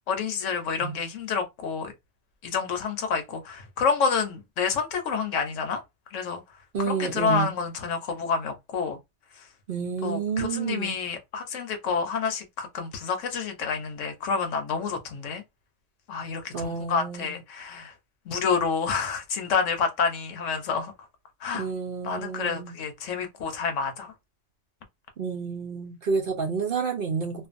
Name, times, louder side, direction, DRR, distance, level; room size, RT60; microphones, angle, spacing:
voice 1, 0.1-1.9 2.4-5.8 6.1-6.4 6.8-9.0 10.0-15.4 16.1-17.9 18.3-20.9 21.4-21.7 22.0-24.1, left 5 dB, 80° left, 1.1 m, -28 dB
voice 2, 6.7-7.5 9.7-11.0 16.5-17.4 21.5-22.8 25.2-27.5, right 5 dB, 55° right, 0.6 m, -29 dB
2.5 x 2.4 x 2.5 m
omnidirectional pair, 1.3 m